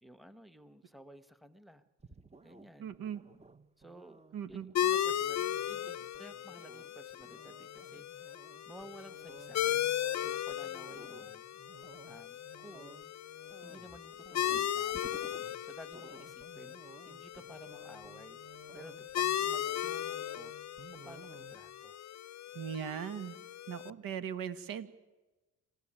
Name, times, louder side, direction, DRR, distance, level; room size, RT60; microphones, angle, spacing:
voice 1, 0.0-1.8 2.4-3.0 3.8-4.2 4.5-8.3 8.7-9.9 10.2-11.4 12.1-13.1 13.6-15.2 15.6-18.4 18.7-20.5 20.9-22.0 22.5-22.6, right 1 dB, ahead, 12 dB, 1.3 m, -54 dB
sound 1, 2.0-21.8, right 4 dB, 20° right, 1.1 m, -56 dB
voice 2, 2.8-3.2 4.3-4.7 22.5-23.4 23.7-24.9, right 8 dB, 75° right, 13 dB, 1.6 m, -39 dB
sound 2, 4.7-23.9, left 11 dB, 50° left, 0.7 m, -37 dB
27.0 x 14.5 x 8.9 m, 1.2 s
cardioid pair, 85°, 35 cm